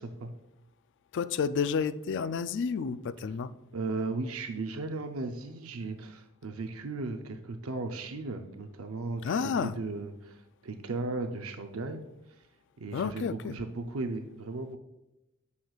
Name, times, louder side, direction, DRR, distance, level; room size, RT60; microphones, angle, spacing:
voice 1, 1.1-3.5 9.2-9.7 12.9-13.5, left 6 dB, 60° left, 14 dB, 0.4 m, -30 dB
voice 2, 3.7-12.0 12.4-12.5 12.8-14.8, right 3 dB, 85° right, 6 dB, 0.6 m, -36 dB
9.6 x 6.7 x 2.4 m, 0.92 s
head